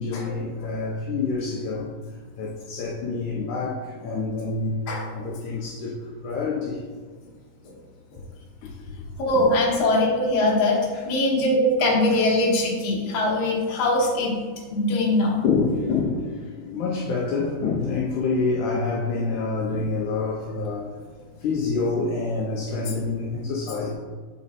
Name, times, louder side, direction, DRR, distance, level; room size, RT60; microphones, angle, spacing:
voice 1, 0.0-1.9 2.4-6.0 6.2-6.8 8.6-9.0 9.4-9.5 15.4-21.0 21.4-23.9, left 4 dB, 70° left, -2 dB, 2.0 m, -27 dB
voice 2, 9.2-10.8 11.1-14.3 14.7-15.4, left 1 dB, 55° left, -4 dB, 2.1 m, -21 dB
7.5 x 4.4 x 4.1 m, 1.5 s
omnidirectional pair, 4.1 m